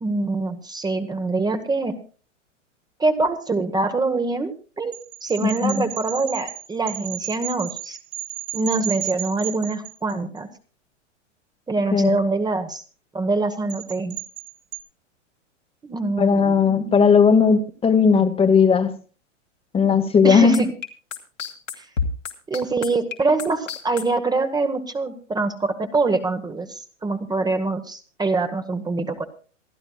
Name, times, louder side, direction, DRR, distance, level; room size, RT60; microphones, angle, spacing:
voice 1, 0.0-1.9 3.0-4.9 5.2-8.0 8.5-10.5 11.7-12.8 13.1-14.2 15.8-17.0 20.2-20.7 21.8-21.9 22.5-29.3, right 3 dB, 10° right, 8 dB, 1.0 m, -24 dB
sound 1, 4.9-10.4 13.7-14.8, right 20 dB, 50° right, 2.3 m, -34 dB
voice 2, 16.2-18.9 19.7-20.6, left 6 dB, 15° left, 9 dB, 1.1 m, -17 dB
sound 2, 20.5-24.0, left 6 dB, 85° left, 2.7 m, -28 dB
27.0 x 11.0 x 2.3 m, 0.37 s
hypercardioid pair, 110°, 37 cm